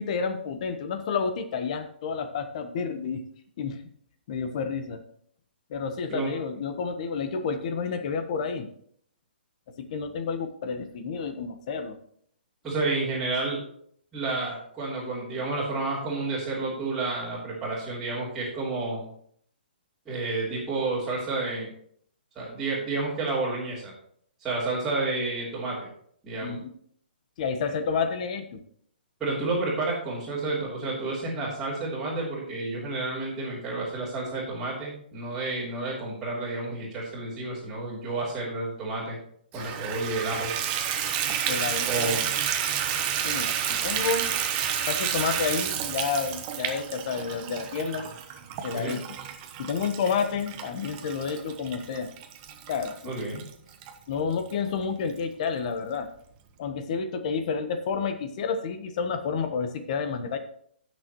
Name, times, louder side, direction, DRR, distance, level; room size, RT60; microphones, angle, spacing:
voice 1, 0.0-3.2 3.6-3.8 4.3-5.0 5.7-8.7 9.9-12.0 26.4-26.7 27.4-28.6 41.5-42.1 43.2-44.3 44.9-48.1 48.6-49.0 49.6-52.1 52.7-52.9 54.1-56.1 56.6-60.4, left 5 dB, 40° left, 8 dB, 1.2 m, -30 dB
voice 2, 12.6-13.6 14.1-19.1 20.0-21.7 22.3-23.9 24.4-25.9 26.2-26.5 29.2-39.2 39.5-40.5 41.9-42.2 48.7-48.9 53.0-53.4, right 3 dB, 5° right, -12 dB, 3.3 m, -30 dB
Water tap faucet / Bathtub (filling or washing), 39.5-53.9 54.5-54.6 55.1-55.2 55.5-55.6, right 9 dB, 25° right, 0.9 m, -30 dB
17.0 x 6.4 x 3.1 m, 0.63 s
hypercardioid pair, 160°, 6 cm